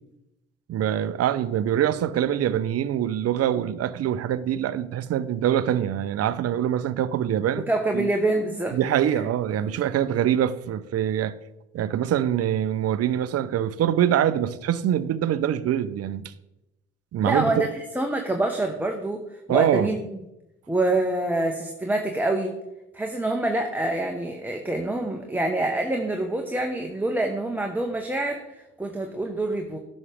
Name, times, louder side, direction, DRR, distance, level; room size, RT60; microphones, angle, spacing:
voice 1, 0.7-8.1 8.7-11.3 11.7-16.3 17.1-17.7 19.5-19.9, right 10 dB, 50° right, 0.6 m, -24 dB
voice 2, 7.7-8.8 9.1-9.2 17.2-17.7 17.9-19.2 19.5-20.0 20.7-22.6 22.9-29.8, right 2 dB, 5° right, 1.1 m, -26 dB
10.5 x 6.4 x 3.5 m
hypercardioid pair, 55°, 32 cm